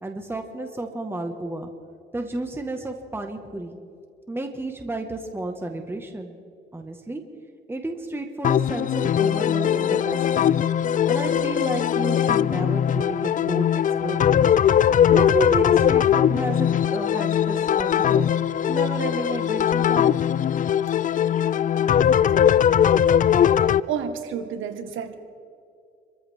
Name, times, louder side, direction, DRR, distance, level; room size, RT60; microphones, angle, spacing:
voice 1, 0.0-1.7 2.1-3.8 4.3-6.4 6.7-7.2 7.7-10.6 11.1-14.4 15.1-18.3 18.7-20.3, right 2 dB, 10° right, 4 dB, 1.5 m, -31 dB
sound 1, 8.4-23.8, left 9 dB, 40° left, 0.4 m, -20 dB
voice 2, 23.8-25.1, right 8 dB, 80° right, 7 dB, 1.6 m, -30 dB
27.5 x 14.5 x 3.6 m, 2.4 s
cardioid pair, 90°, 20 cm